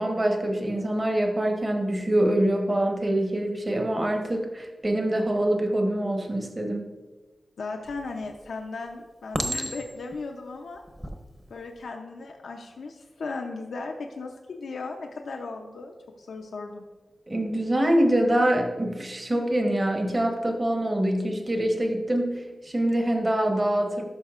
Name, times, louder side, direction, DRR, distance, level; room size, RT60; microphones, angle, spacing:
voice 1, 0.0-6.9 17.3-24.0, right 1 dB, 30° right, 3 dB, 1.0 m, -25 dB
voice 2, 7.6-10.8 11.5-16.8, left 3 dB, 85° left, 3 dB, 0.5 m, -36 dB
Chink clink, 7.9-8.4 9.3-10.1 10.9-11.1, equal, 10° right, 0.8 m, -31 dB
11.5 x 5.8 x 2.4 m, 1.2 s
wide cardioid pair, 90°, 0 cm